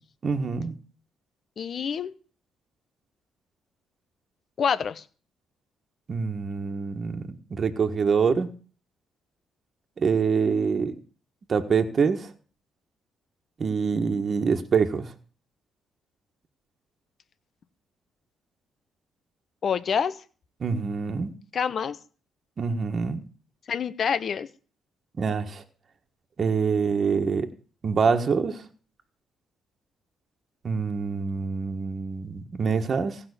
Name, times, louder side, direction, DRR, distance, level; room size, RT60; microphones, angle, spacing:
voice 1, 0.2-0.7 6.1-8.5 10.0-10.9 11.5-12.3 13.6-15.1 20.6-21.3 22.6-23.2 25.2-25.6 26.4-27.5 27.8-28.6 30.6-33.2, right 5 dB, 45° right, 5 dB, 1.5 m, -25 dB
voice 2, 1.6-2.1 4.6-5.0 19.6-20.2 21.5-22.0 23.7-24.5, left 7 dB, 55° left, 14 dB, 1.0 m, -26 dB
15.5 x 5.6 x 8.3 m, 0.39 s
cardioid pair, 90°, 0 cm